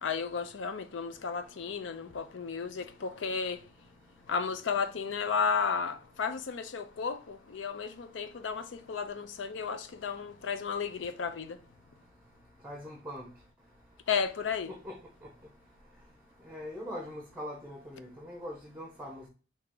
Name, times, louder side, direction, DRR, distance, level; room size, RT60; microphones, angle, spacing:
voice 1, 0.0-3.6 4.3-11.6 14.1-14.7, left 5 dB, 75° left, 0.5 m, -33 dB
voice 2, 12.6-13.2 14.8-14.9 16.5-19.3, equal, 5° right, 0.8 m, -41 dB
4.6 x 2.9 x 3.7 m
head